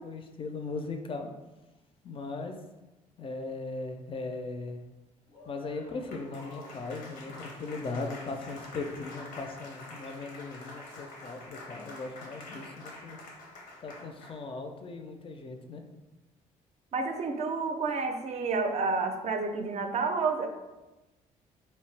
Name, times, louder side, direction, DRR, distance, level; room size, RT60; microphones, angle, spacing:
voice 1, 0.0-1.3 2.0-2.5 3.2-4.8 5.5-13.2 13.8-15.8, left 3 dB, 40° left, 5 dB, 0.4 m, -38 dB
Applause, 5.3-14.5, left 2 dB, 80° left, 0.6 m, -47 dB
voice 2, 16.9-20.5, right 4 dB, 50° right, 5 dB, 0.4 m, -30 dB
2.7 x 2.1 x 3.2 m, 1.1 s
cardioid pair, 80°, 14 cm